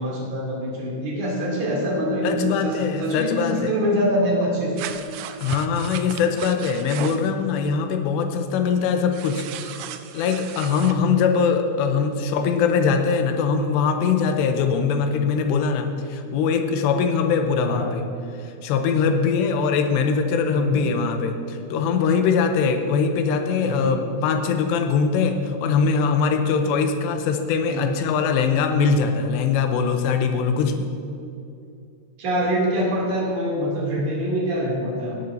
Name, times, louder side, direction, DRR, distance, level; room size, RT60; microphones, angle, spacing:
voice 1, 0.0-4.7 17.7-17.9 20.5-20.8 23.6-23.9 27.7-27.8 32.2-35.2, equal, 50° right, -4 dB, 4.0 m, -24 dB
voice 2, 2.2-3.7 5.4-9.8 10.1-18.0 18.4-30.9, left 5 dB, 90° left, 5 dB, 2.9 m, -22 dB
sound 1, 4.8-7.3 9.1-11.0, right 9 dB, 85° right, 2.2 m, -35 dB
18.0 x 10.5 x 2.8 m, 2.6 s
omnidirectional pair, 4.9 m